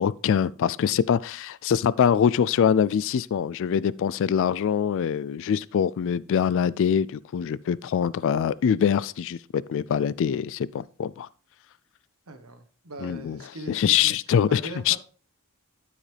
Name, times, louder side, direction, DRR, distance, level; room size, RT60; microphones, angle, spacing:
voice 1, 0.0-11.3 13.0-13.4 13.7-14.6 14.9-15.0, left 8 dB, 60° left, 0.3 m, -24 dB
voice 2, 12.3-14.1 14.5-15.0, right 2 dB, 70° right, 1.3 m, -40 dB
12.5 x 5.1 x 3.4 m
head